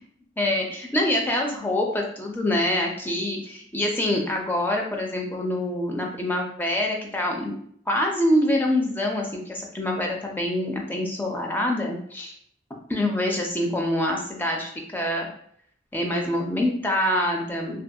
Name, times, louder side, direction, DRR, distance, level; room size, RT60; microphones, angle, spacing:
voice 1, 0.4-7.6 7.9-12.3 12.9-15.3 15.9-17.8, left 1 dB, 10° left, 0 dB, 0.4 m, -25 dB
2.6 x 2.5 x 2.2 m, 0.65 s
head